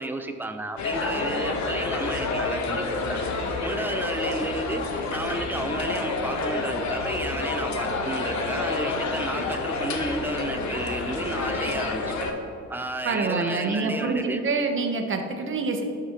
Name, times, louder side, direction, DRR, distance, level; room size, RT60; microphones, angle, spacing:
voice 1, 0.0-3.3 3.6-4.8 5.1-12.1 12.7-14.4, right 2 dB, 5° right, 6 dB, 0.6 m, -32 dB
sound 1, 0.8-12.3, left 3 dB, 70° left, 1.0 m, -29 dB
voice 2, 13.0-15.8, right 3 dB, 40° right, 4 dB, 1.0 m, -26 dB
12.0 x 5.0 x 2.9 m, 2.4 s
cardioid pair, 90°, 30 cm